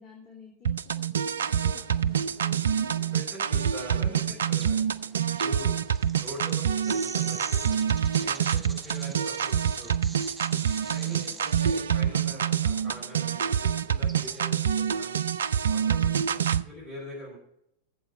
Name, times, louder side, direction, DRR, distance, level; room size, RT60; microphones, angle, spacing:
voice 1, 0.0-3.1 3.9-4.6 11.0-11.4, left 3 dB, 35° left, -2 dB, 2.9 m, -51 dB
sound 1, 0.6-16.6, right 8 dB, 65° right, 0.4 m, -26 dB
sound 2, 1.6-14.6, right 3 dB, 15° right, 1.0 m, -47 dB
voice 2, 3.1-4.8 5.4-5.8 6.2-10.0 10.7-15.2 15.7-17.4, equal, 35° right, -4 dB, 6.2 m, -43 dB
12.5 x 7.9 x 5.9 m, 0.77 s
figure-of-eight pair, 90°, 0 cm